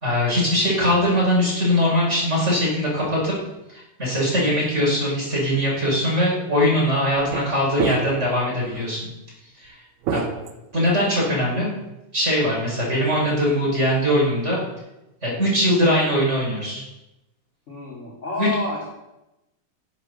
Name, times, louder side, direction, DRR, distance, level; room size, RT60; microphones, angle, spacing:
voice 1, 0.0-3.3 3.7-9.1 9.6-9.7 10.1-10.2 10.7-11.7 12.1-14.6 15.2-16.8 18.4-18.5, equal, 15° right, -5 dB, 4.8 m, -21 dB
sound 1, 6.1-6.3 7.2-7.5 7.8-8.3 8.7-8.9 10.0-11.2, right 6 dB, 75° right, 2.7 m, -28 dB
voice 2, 17.7-18.9, left 3 dB, 25° left, -3 dB, 1.7 m, -30 dB
12.5 x 7.6 x 6.6 m, 0.94 s
omnidirectional pair, 4.8 m